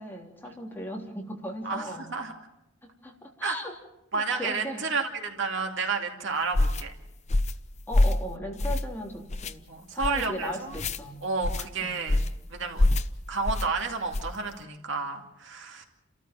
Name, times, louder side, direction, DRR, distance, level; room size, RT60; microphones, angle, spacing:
voice 1, 0.0-2.0 3.0-3.7 4.1-4.8 7.9-11.2 11.8-11.9, equal, 10° left, -1 dB, 3.5 m, -37 dB
voice 2, 1.6-2.3 3.4-3.6 4.1-6.9 9.7-10.7 11.2-12.2 12.5-12.9 13.3-15.8, right 4 dB, 65° right, 3 dB, 2.5 m, -31 dB
sound 1, 6.5-6.8 7.3-7.6 7.9-8.2 8.6-9.0 9.3-9.5 10.0-10.3 10.7-11.0 11.4-11.7 12.1-12.4 12.8-13.1 13.4-13.7 14.1-14.4, left 1 dB, 35° left, 0.8 m, -25 dB
29.5 x 14.0 x 7.6 m, 0.89 s
head